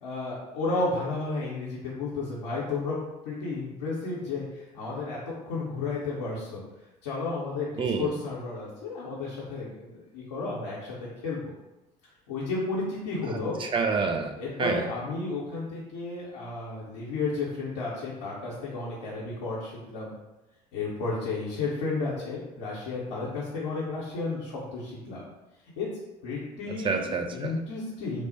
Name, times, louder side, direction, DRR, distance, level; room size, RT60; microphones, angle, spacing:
voice 1, 0.0-3.0 3.2-6.6 7.0-11.5 12.3-13.5 14.4-20.1 20.7-25.2 25.8-25.9 26.2-27.0 27.3-28.3, left 3 dB, 75° left, -8 dB, 0.7 m, -32 dB
voice 2, 7.8-8.1 13.6-14.3 14.6-14.8 26.8-27.5, right 5 dB, 25° right, 5 dB, 0.4 m, -27 dB
3.1 x 2.0 x 3.9 m, 0.98 s
figure-of-eight pair, 60°, 20 cm